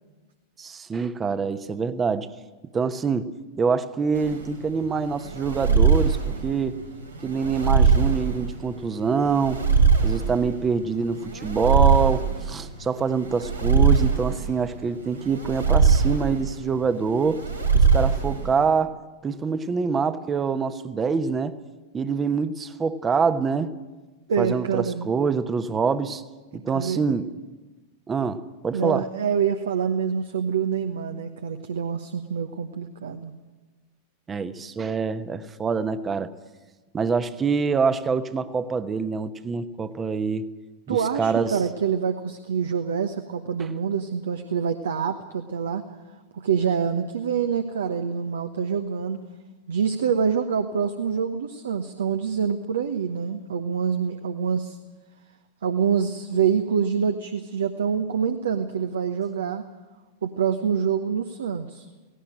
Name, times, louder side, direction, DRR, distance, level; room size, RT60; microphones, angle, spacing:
voice 1, 0.6-2.3 2.7-3.3 3.6-6.8 7.2-9.6 10.0-17.5 17.7-19.0 19.2-21.6 21.9-23.7 24.4-26.2 26.5-27.3 28.1-29.1 34.3-36.3 36.9-40.5 40.9-41.6, right 5 dB, 20° right, 12 dB, 1.1 m, -25 dB
sound 1, 4.1-18.6, right 5 dB, 90° right, 5.3 m, -22 dB
voice 2, 24.3-25.1 26.7-27.0 28.7-33.3 40.9-45.8 46.4-49.2 49.7-54.8 55.6-59.6 60.2-61.8, right 7 dB, 65° right, 7 dB, 1.1 m, -26 dB
18.0 x 17.5 x 9.0 m, 1.2 s
figure-of-eight pair, 90°, 0 cm